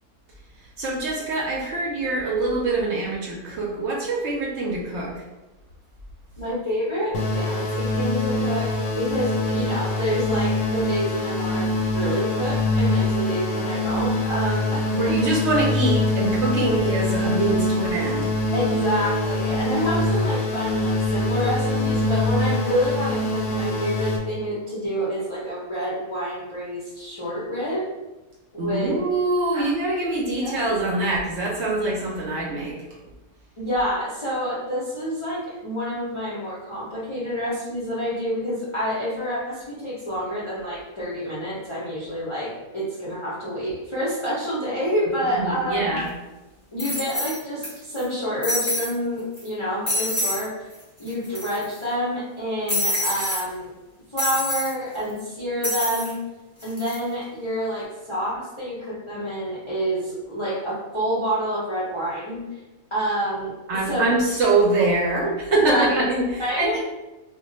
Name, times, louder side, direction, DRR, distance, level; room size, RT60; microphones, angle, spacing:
voice 1, 0.8-5.2 14.9-18.3 28.6-32.8 45.3-46.1 63.7-66.8, right 2 dB, 65° right, -3 dB, 0.7 m, -24 dB
voice 2, 6.4-15.2 18.5-27.9 28.5-29.0 29.5-29.7 30.4-30.8 33.6-46.0 46.7-50.7 51.0-53.7 54.1-56.2 56.6-62.4 62.9-63.5 63.8-64.1 65.2-66.0 66.4-66.8, equal, 35° left, -9 dB, 0.5 m, -28 dB
sound 1, 7.1-24.2, left 1 dB, 80° left, 1.1 m, -24 dB
sound 2, 46.0-46.1 46.8-47.7 48.0-48.1 48.4-48.9 49.4-49.5 49.9-50.4 50.7-50.8 51.1-51.8 52.7-53.4 54.2-54.7 55.6-56.1 56.6-57.0, left 1 dB, 5° left, 0.8 m, -26 dB
2.3 x 2.2 x 3.9 m, 1.1 s
omnidirectional pair, 1.5 m